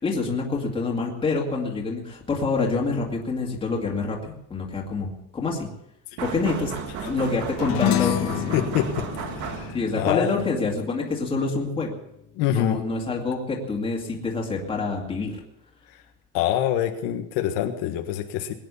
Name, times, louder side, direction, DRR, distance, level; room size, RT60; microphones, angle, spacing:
voice 1, 0.0-5.7 6.2-6.8 7.1-8.5 9.7-11.9 12.5-15.4, left 3 dB, 15° left, -2 dB, 2.3 m, -27 dB
sound 1, 6.2-10.0, right 7 dB, 55° right, 2.5 m, -34 dB
sound 2, 7.6-12.3, left 11 dB, 50° left, 1.6 m, -29 dB
voice 2, 8.5-9.0 9.3-10.3 12.4-12.8 16.3-18.5, left 11 dB, 80° left, 5 dB, 1.6 m, -25 dB
21.5 x 9.7 x 7.0 m, 0.78 s
cardioid pair, 180°, 36 cm